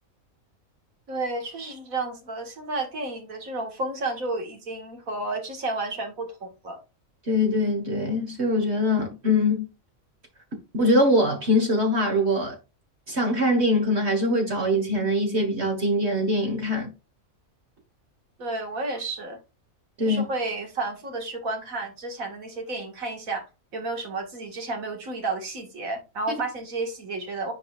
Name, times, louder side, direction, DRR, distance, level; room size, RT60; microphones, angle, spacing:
voice 1, 1.1-6.8 18.4-19.4 20.0-23.4 23.7-27.5, right 2 dB, 70° right, 2.3 m, -31 dB
voice 2, 7.3-9.7 10.7-12.6 13.1-16.9 20.0-20.3, left 1 dB, 50° right, 1.8 m, -23 dB
9.3 x 4.9 x 2.4 m
omnidirectional pair, 1.5 m